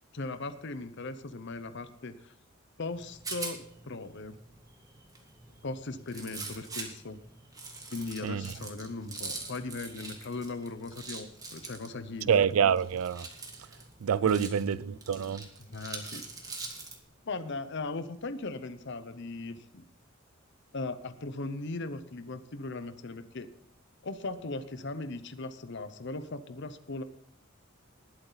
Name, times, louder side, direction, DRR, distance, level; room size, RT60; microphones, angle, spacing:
voice 1, 0.1-2.3 2.8-4.4 5.6-7.2 7.9-12.4 14.2-14.8 15.7-16.2 17.3-19.8 20.7-23.5 24.0-27.0, left 3 dB, 55° left, 0.8 m, -38 dB
Rattle, 2.9-17.0, right 3 dB, 15° right, 1.9 m, -44 dB
voice 2, 12.3-13.3 14.0-15.4, right 7 dB, 80° right, 0.4 m, -26 dB
20.0 x 8.0 x 4.0 m
head